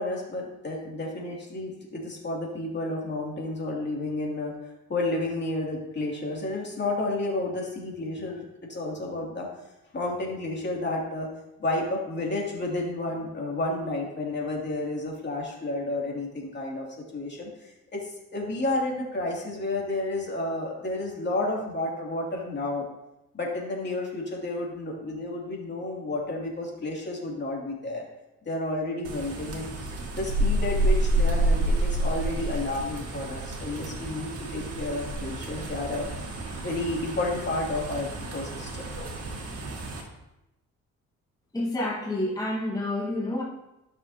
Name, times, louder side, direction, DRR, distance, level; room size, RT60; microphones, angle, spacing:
voice 1, 0.0-4.5 4.9-8.4 8.7-9.5 9.9-11.3 11.6-16.8 17.1-22.8 23.3-28.0 28.5-36.1 36.6-39.4, left 2 dB, 35° left, -2 dB, 2.7 m, -31 dB
sound 1, 29.0-40.0, right 1 dB, 55° right, 1.9 m, -29 dB
voice 2, 41.5-43.4, left 1 dB, 10° left, -4 dB, 1.6 m, -29 dB
12.5 x 6.3 x 2.9 m, 0.93 s
cardioid pair, 90°, 30 cm